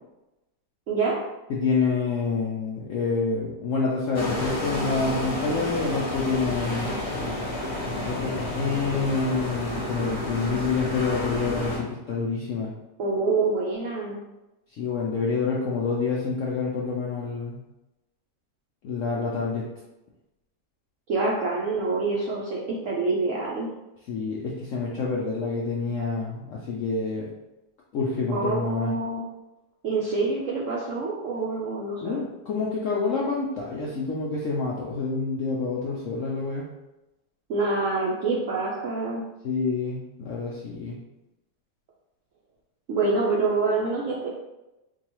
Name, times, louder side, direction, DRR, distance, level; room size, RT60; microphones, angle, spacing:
voice 1, 0.9-1.2 13.0-14.2 21.1-23.7 28.3-29.2 29.8-32.2 37.5-39.2 42.9-44.3, right 3 dB, 70° right, -4 dB, 0.7 m, -26 dB
voice 2, 1.5-7.0 8.0-12.7 14.7-17.6 18.8-19.6 24.1-27.3 27.9-28.9 32.0-36.7 39.4-41.0, left 4 dB, 75° left, -4 dB, 0.7 m, -27 dB
sound 1, 4.1-11.8, left 1 dB, 40° left, 1.1 m, -30 dB
4.7 x 2.3 x 3.0 m, 0.97 s
omnidirectional pair, 1.9 m